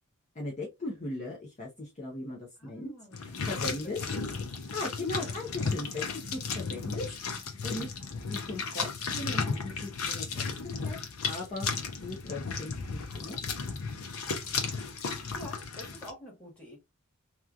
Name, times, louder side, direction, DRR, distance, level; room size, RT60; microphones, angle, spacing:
voice 1, 0.3-2.9 3.2-4.0 4.7-7.1 7.6-7.9 8.3-11.0 11.2-11.7 12.0-13.4, left 2 dB, 30° left, 0.6 m, -38 dB
voice 2, 2.6-3.2 3.6-4.2 5.1-5.4 15.3-16.8, equal, 5° left, 1.3 m, -47 dB
sound 1, 3.1-16.1, left 5 dB, 75° left, 0.6 m, -34 dB
2.9 x 2.3 x 2.4 m
head